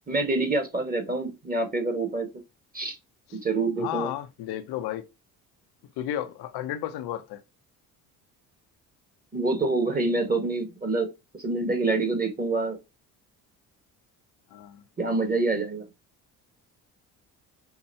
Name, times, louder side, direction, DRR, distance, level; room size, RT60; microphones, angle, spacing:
voice 1, 0.1-2.3 2.7-3.0 3.4-4.1 9.3-11.1 11.4-12.8 15.0-15.9, right 3 dB, 20° right, 1.6 m, -26 dB
voice 2, 3.8-5.0 6.0-7.4 14.5-14.8, left 12 dB, 65° left, 0.6 m, -33 dB
5.6 x 2.2 x 2.6 m
supercardioid pair, 65°, 42 cm